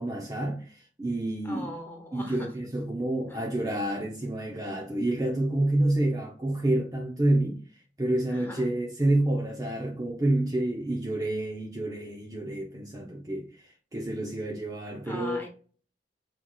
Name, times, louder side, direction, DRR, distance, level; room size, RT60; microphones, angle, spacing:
voice 1, 0.0-1.7 2.1-7.6 8.0-13.5 13.9-15.4, right 1 dB, 20° right, 0.7 m, -28 dB
voice 2, 1.4-2.5 3.3-3.5 8.3-8.7 15.0-15.5, left 1 dB, 10° left, 1.2 m, -40 dB
6.0 x 3.0 x 2.3 m
head